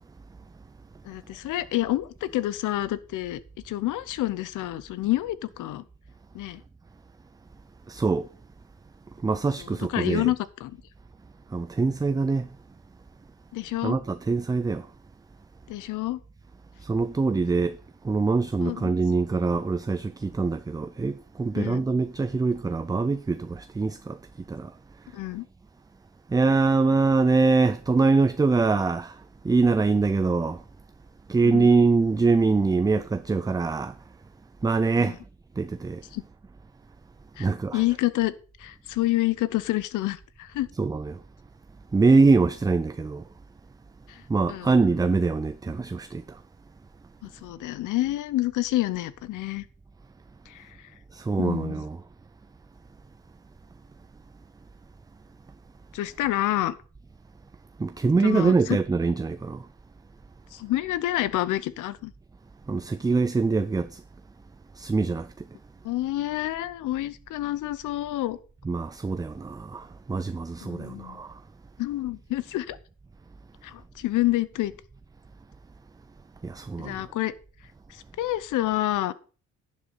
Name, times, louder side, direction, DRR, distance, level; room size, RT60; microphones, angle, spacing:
voice 1, 1.0-5.8 6.3-6.6 9.6-10.8 13.5-14.0 15.7-16.2 18.6-18.9 21.5-21.8 25.1-25.5 31.4-31.7 35.0-35.2 36.1-36.2 37.4-38.3 38.6-40.7 44.1-44.2 44.5-44.8 47.2-49.7 50.5-50.8 51.4-51.9 55.9-56.8 58.2-58.8 60.5-62.1 65.8-68.4 70.6-71.2 71.8-72.8 73.6-74.7 76.8-77.3 77.9-79.1, left 16 dB, 85° left, 0.7 m, -28 dB
voice 2, 7.9-8.3 9.2-10.3 11.5-12.5 13.8-14.9 16.8-17.8 18.0-24.2 24.5-24.7 26.3-29.2 29.4-30.6 31.3-34.0 34.6-35.2 35.6-36.0 37.4-37.8 40.8-41.2 41.9-43.2 44.3-46.4 51.1-52.0 57.8-59.6 62.7-64.0 64.8-65.3 68.7-71.4 76.4-77.1, right 4 dB, 15° right, 0.4 m, -24 dB
11.0 x 7.4 x 4.1 m
cardioid pair, 90°, 30 cm